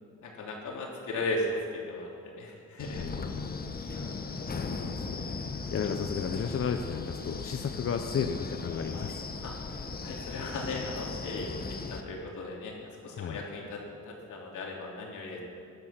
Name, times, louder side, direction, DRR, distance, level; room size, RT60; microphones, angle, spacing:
voice 1, 0.2-3.0 3.9-4.2 9.4-9.5 10.0-15.4, left 2 dB, 75° left, -1 dB, 3.4 m, -37 dB
Wind, 2.8-12.0, left 4 dB, 30° left, 1.2 m, -37 dB
voice 2, 2.9-3.6 4.4-5.0 5.7-9.2 13.1-13.4, left 6 dB, 45° left, 6 dB, 0.9 m, -33 dB
17.0 x 12.0 x 6.0 m, 2.5 s
cardioid pair, 90°, 30 cm